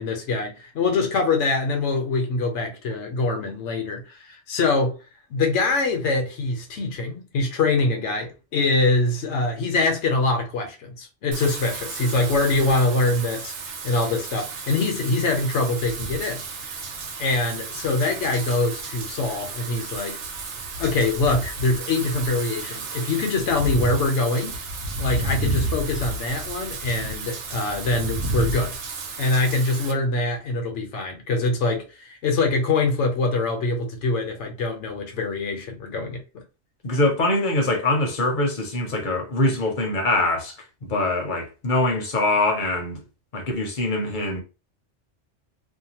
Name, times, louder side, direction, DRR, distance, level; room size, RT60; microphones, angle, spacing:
voice 1, 0.0-5.0 5.3-16.4 17.2-20.2 20.8-24.6 25.0-28.8 29.2-36.4, left 3 dB, 75° left, 1.0 m, -24 dB
Wind / Rain, 11.3-29.9, right 2 dB, 75° right, 0.9 m, -32 dB
voice 2, 36.8-40.5 40.8-43.0 43.3-44.4, left 2 dB, 50° left, 0.8 m, -23 dB
2.7 x 2.2 x 2.8 m
omnidirectional pair, 1.2 m